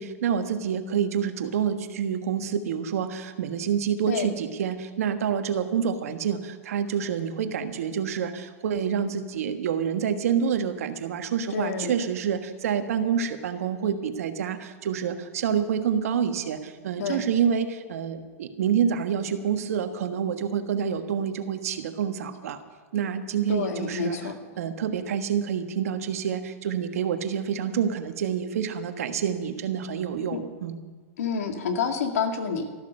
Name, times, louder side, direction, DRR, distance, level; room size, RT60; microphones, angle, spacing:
voice 1, 0.0-22.6 22.9-24.2 24.6-30.7, right 8 dB, 80° right, 7 dB, 1.5 m, -27 dB
voice 2, 11.5-12.0 17.0-17.3 23.5-24.3 30.3-30.4 31.2-32.7, left 6 dB, 85° left, 5 dB, 2.1 m, -28 dB
13.5 x 12.5 x 6.5 m, 1.5 s
hypercardioid pair, 120°, 8 cm